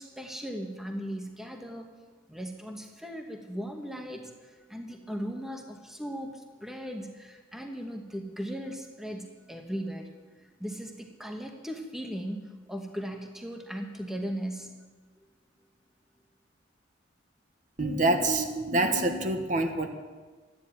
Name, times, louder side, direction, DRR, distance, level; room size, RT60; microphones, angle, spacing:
voice 1, 0.0-1.9 2.3-10.1 10.6-14.8, equal, ahead, 3 dB, 1.3 m, -38 dB
voice 2, 17.8-19.9, right 2 dB, 40° right, 5 dB, 1.2 m, -26 dB
13.5 x 10.5 x 8.9 m, 1.4 s
head